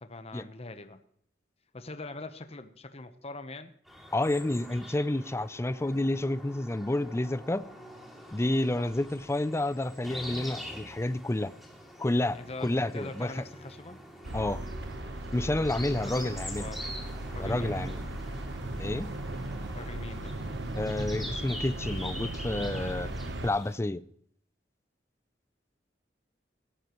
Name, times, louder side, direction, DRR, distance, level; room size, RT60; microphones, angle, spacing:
voice 1, 0.0-1.0 1.7-3.7 8.8-8.9 12.3-14.0 15.6-16.9 17.3-17.7 19.7-20.4, left 2 dB, 35° left, 0.9 m, -43 dB
sound 1, 3.9-23.8, equal, ahead, 2.6 m, -45 dB
voice 2, 4.1-7.7 8.3-11.5 12.0-13.4 14.3-14.6 15.3-16.7 17.4-18.0 18.8-19.1 20.8-23.1 23.4-24.0, left 1 dB, 15° left, 0.4 m, -30 dB
sound 2, 14.2-23.5, right 1 dB, 85° right, 1.0 m, -37 dB
17.0 x 13.0 x 3.1 m
head